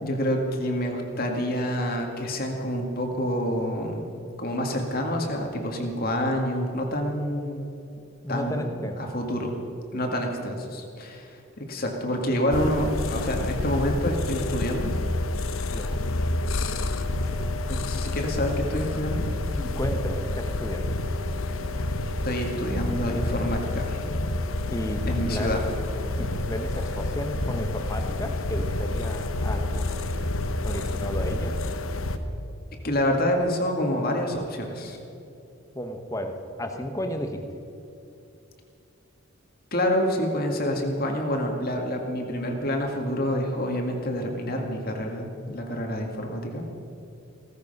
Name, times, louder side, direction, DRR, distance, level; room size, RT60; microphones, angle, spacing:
voice 1, 0.0-4.1 4.4-7.7 8.3-8.7 9.0-9.5 9.9-14.9 17.7-19.2 22.2-24.0 25.1-25.6 32.8-35.0 39.7-46.7, equal, 45° left, 2 dB, 2.0 m, -27 dB
voice 2, 8.2-9.0 15.7-16.0 19.6-20.9 24.7-25.5 26.2-30.0 30.6-31.5 35.7-37.4, equal, 15° left, 5 dB, 1.2 m, -33 dB
sound 1, 12.5-32.2, left 2 dB, 75° left, 1.0 m, -28 dB
16.5 x 14.5 x 5.4 m, 2.7 s
head